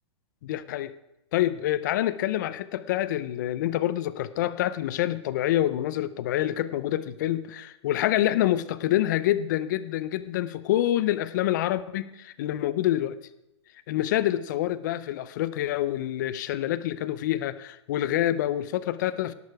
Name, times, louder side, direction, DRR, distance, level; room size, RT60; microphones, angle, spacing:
voice 1, 0.4-0.9 1.3-13.2 13.9-19.3, left 13 dB, 40° left, 15 dB, 0.6 m, -27 dB
18.0 x 6.6 x 4.8 m, 0.89 s
hypercardioid pair, 160°, 15 cm